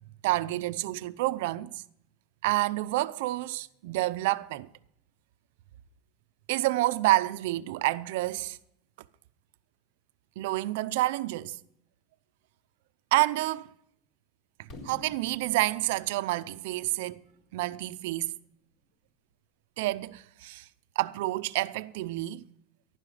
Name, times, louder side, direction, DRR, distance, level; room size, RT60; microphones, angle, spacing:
voice 1, 0.2-1.8 2.4-4.7 6.5-8.6 10.4-11.6 13.1-13.7 14.6-17.2 17.5-18.3 19.8-20.7 21.0-22.4, right 18 dB, 65° right, 0.6 m, -28 dB
Fireworks, 14.7-18.6, left 1 dB, 35° left, 4.0 m, -51 dB
15.0 x 12.0 x 5.0 m
supercardioid pair, 165°, 0 cm